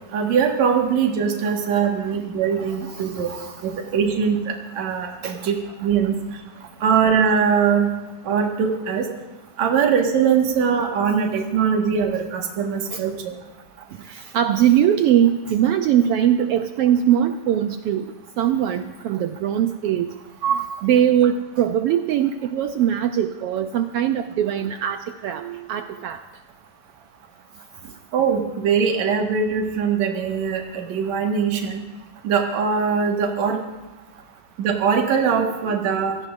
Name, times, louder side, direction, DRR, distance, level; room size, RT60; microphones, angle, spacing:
voice 1, 0.1-3.3 3.6-6.2 6.8-7.9 8.2-9.1 9.6-13.1 28.1-31.8 32.2-33.6 34.6-36.2, right 6 dB, 65° right, 1 dB, 2.9 m, -21 dB
voice 2, 2.6-3.5 5.2-5.3 12.9-13.0 14.1-20.1 20.4-26.2, right 10 dB, 90° right, 7 dB, 1.3 m, -21 dB
27.0 x 17.0 x 2.6 m, 1.1 s
omnidirectional pair, 3.4 m